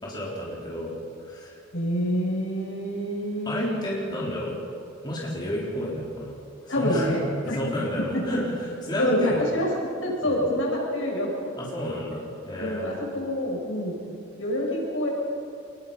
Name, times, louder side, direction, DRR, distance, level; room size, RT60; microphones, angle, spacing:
voice 1, 0.0-0.9 1.2-1.6 3.4-4.5 5.0-6.3 6.7-7.2 7.4-9.4 10.2-10.4 11.6-13.0, equal, 20° left, -5 dB, 4.1 m, -31 dB
voice 2, 1.7-3.9 6.7-7.6 8.0-8.4 9.0-9.7 10.0-11.5 12.6-14.0 14.4-15.1, equal, 80° left, -2 dB, 7.3 m, -27 dB
26.5 x 21.0 x 5.7 m, 2.6 s
head